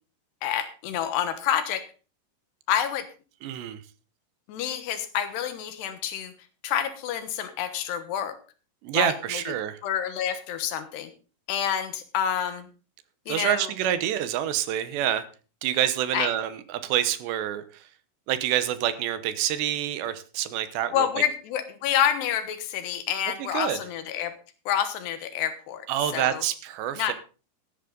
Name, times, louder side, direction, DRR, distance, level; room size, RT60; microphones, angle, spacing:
voice 1, 0.4-1.8 2.7-3.1 4.5-6.3 6.6-8.3 8.9-9.1 9.8-11.1 11.5-12.7 13.3-13.7 16.1-16.3 20.9-24.3 24.7-25.9 26.1-26.4 27.0-27.1, left 9 dB, 75° left, 10 dB, 3.3 m, -28 dB
voice 2, 3.4-3.8 8.8-9.8 13.3-15.3 15.6-17.9 18.3-21.1 23.4-23.8 25.9-27.1, right 11 dB, 80° right, 12 dB, 3.2 m, -27 dB
14.5 x 11.0 x 3.9 m, 0.35 s
omnidirectional pair, 5.0 m